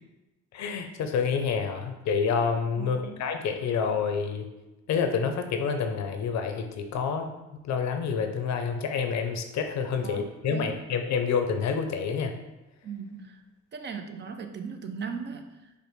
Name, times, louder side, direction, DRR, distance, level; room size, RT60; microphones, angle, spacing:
voice 1, 0.5-4.5 4.9-7.3 7.6-12.3, left 6 dB, 65° left, 6 dB, 0.5 m, -28 dB
voice 2, 2.8-3.2 10.0-10.8 12.8-13.4 13.7-15.8, right 6 dB, 35° right, 6 dB, 0.4 m, -38 dB
5.2 x 2.1 x 3.1 m, 1.0 s
cardioid pair, 90°, 30 cm